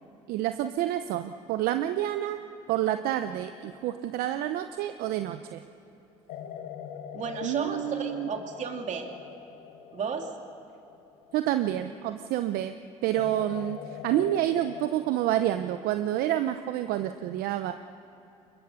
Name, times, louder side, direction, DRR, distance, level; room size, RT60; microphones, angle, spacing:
voice 1, 0.3-2.4 2.7-5.6 7.4-8.3 11.3-12.7 13.0-17.7, right 12 dB, 70° right, 9 dB, 0.7 m, -28 dB
sound 1, 2.7-5.4 6.3-12.1 13.1-14.9, left 8 dB, 75° left, 1.4 m, -43 dB
voice 2, 7.1-9.1 9.9-10.3, right 5 dB, 50° right, 3 dB, 2.8 m, -33 dB
23.0 x 21.0 x 6.6 m, 2.8 s
supercardioid pair, 70°, 16 cm